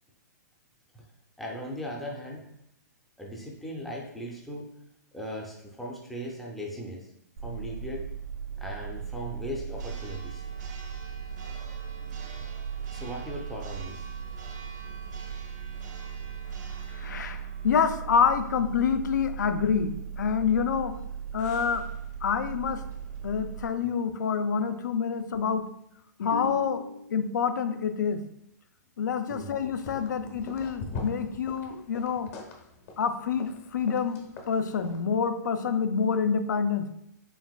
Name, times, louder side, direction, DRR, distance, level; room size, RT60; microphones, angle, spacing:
voice 1, 1.4-2.5 3.2-4.7 5.1-7.1 7.4-8.1 8.6-10.4 12.4-12.5 12.9-14.1 29.3-29.5, equal, ahead, -2 dB, 0.4 m, -38 dB
Church bell, 7.4-23.7, right 7 dB, 85° right, 1.0 m, -38 dB
voice 2, 16.9-20.9 21.3-21.8 22.2-22.8 23.2-25.6 26.2-28.2 29.0-32.3 33.0-34.2 34.5-36.9, left 6 dB, 85° left, 9 dB, 0.4 m, -27 dB
sound 1, 29.6-35.0, left 3 dB, 55° left, 1.0 m, -42 dB
4.6 x 3.4 x 2.3 m, 0.78 s
hypercardioid pair, 150°, 10 cm